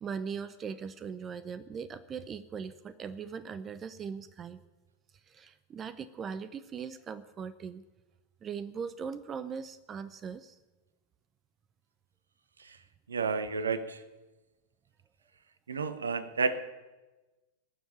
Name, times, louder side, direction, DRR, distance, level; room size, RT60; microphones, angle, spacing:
voice 1, 0.0-4.6 5.3-7.8 8.4-10.6, right 6 dB, 25° right, 14 dB, 0.7 m, -40 dB
voice 2, 13.1-14.0 15.7-16.6, right 4 dB, 70° right, 13 dB, 1.1 m, -31 dB
19.0 x 7.2 x 9.9 m, 1.1 s
figure-of-eight pair, 90°, 0 cm